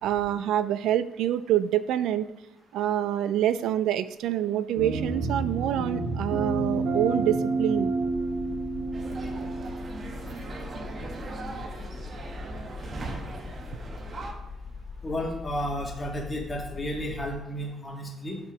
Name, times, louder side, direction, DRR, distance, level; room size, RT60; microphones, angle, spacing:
voice 1, 0.0-2.3 2.7-7.9, right 11 dB, 85° right, 14 dB, 0.3 m, -26 dB
sound 1, 4.8-11.3, right 3 dB, 70° right, 1.9 m, -30 dB
sound 2, 8.0-17.4, left 4 dB, 55° left, 0.8 m, -41 dB
sound 3, 8.9-14.3, right 3 dB, 45° right, 1.1 m, -39 dB
voice 2, 15.0-18.4, equal, 25° left, 0 dB, 1.9 m, -32 dB
5.4 x 5.1 x 5.9 m, 0.89 s
cardioid pair, 90°, 0 cm